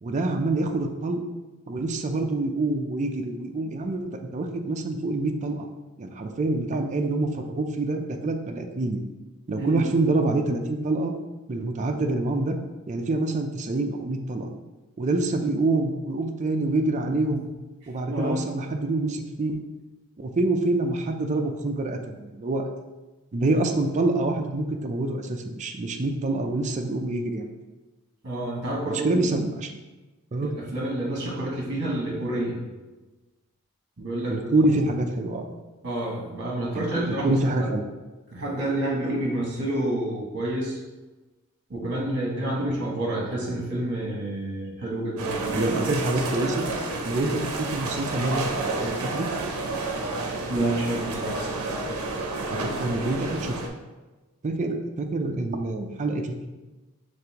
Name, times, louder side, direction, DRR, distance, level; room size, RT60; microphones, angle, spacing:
voice 1, 0.0-1.2 1.7-5.7 6.0-9.0 9.5-11.1 11.5-12.5 12.9-14.5 15.0-17.4 17.9-19.6 20.2-22.6 23.3-27.5 28.9-29.7 30.3-30.5 34.3-35.5 36.7-37.8 45.5-46.7 47.1-48.4 48.8-49.3 52.5-53.5 54.4-56.5, right 2 dB, 35° right, 4 dB, 0.4 m, -26 dB
voice 2, 9.6-9.9 17.3-17.4 18.1-18.4 28.2-29.2 30.4-32.6 34.0-34.9 35.8-37.7 38.3-40.8 41.7-45.5 50.5-51.4, right 1 dB, 55° right, -2 dB, 1.2 m, -29 dB
sound 1, 45.2-53.7, right 2 dB, 75° right, 0.6 m, -30 dB
5.3 x 3.3 x 2.9 m, 1.2 s
head